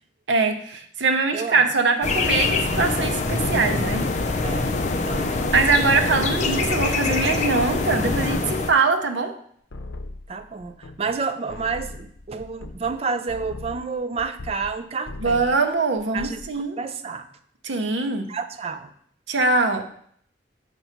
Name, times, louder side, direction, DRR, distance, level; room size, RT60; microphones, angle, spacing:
voice 1, 0.3-4.0 5.5-9.3 15.2-16.8 17.6-18.3 19.3-19.8, right 3 dB, 80° right, 5 dB, 0.7 m, -22 dB
voice 2, 1.3-1.7 4.4-4.8 5.0-5.6 10.3-15.6 16.1-17.3 18.3-18.9, right 5 dB, 35° right, 9 dB, 0.4 m, -30 dB
sound 1, 2.0-8.7, left 3 dB, 40° left, 0.5 m, -24 dB
sound 2, 9.7-11.2 11.5-14.8 15.0-15.6 16.0-16.5, left 2 dB, 90° left, 0.6 m, -39 dB
6.7 x 3.0 x 5.8 m, 0.63 s
head